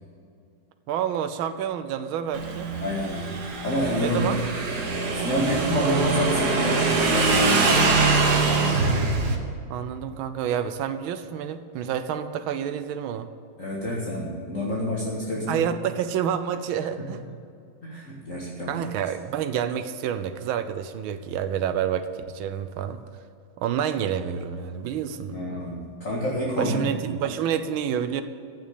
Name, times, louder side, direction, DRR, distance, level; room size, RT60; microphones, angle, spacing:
voice 1, 0.9-2.7 4.0-4.4 9.7-13.3 15.5-17.2 18.7-23.0 23.6-25.4 26.6-28.2, right 9 dB, 80° right, 10 dB, 1.6 m, -28 dB
Motorcycle / Engine, 2.3-9.4, right 3 dB, 55° right, 1.9 m, -23 dB
voice 2, 2.8-3.3 3.6-4.3 5.1-7.7 13.6-15.7 17.0-17.1 17.8-18.9 25.3-26.9, equal, 40° left, -5 dB, 2.2 m, -28 dB
15.5 x 6.3 x 8.6 m, 2.4 s
omnidirectional pair, 2.2 m